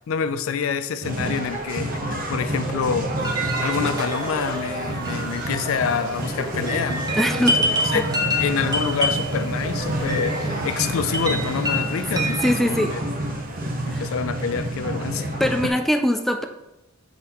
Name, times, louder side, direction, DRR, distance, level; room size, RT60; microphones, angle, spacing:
voice 1, 0.1-3.1 3.6-7.4 7.9-8.1 8.4-13.0 13.9-15.3 15.6-15.7, left 6 dB, 80° left, 12 dB, 0.4 m, -27 dB
sound 1, 1.0-15.7, right 1 dB, 45° right, 0.9 m, -28 dB
sound 2, 3.2-12.5, equal, 20° right, 0.8 m, -28 dB
voice 2, 7.2-7.6 7.9-8.0 12.4-12.9 13.9-14.0 15.4-16.4, left 1 dB, ahead, 5 dB, 0.3 m, -22 dB
6.3 x 5.5 x 3.0 m, 0.95 s
head